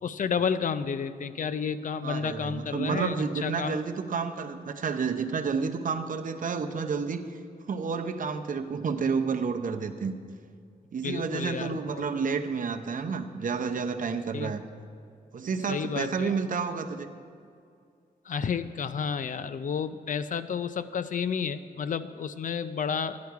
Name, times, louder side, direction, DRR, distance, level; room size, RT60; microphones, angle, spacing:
voice 1, 0.0-3.2 3.4-3.8 11.0-12.0 14.3-14.5 15.7-16.3 18.3-23.2, left 6 dB, 55° left, 12 dB, 0.5 m, -31 dB
voice 2, 2.0-7.4 7.7-10.1 10.9-14.6 15.3-17.1, right 5 dB, 55° right, 7 dB, 0.7 m, -30 dB
13.5 x 10.5 x 4.7 m, 2.4 s
wide cardioid pair, 150°, 16 cm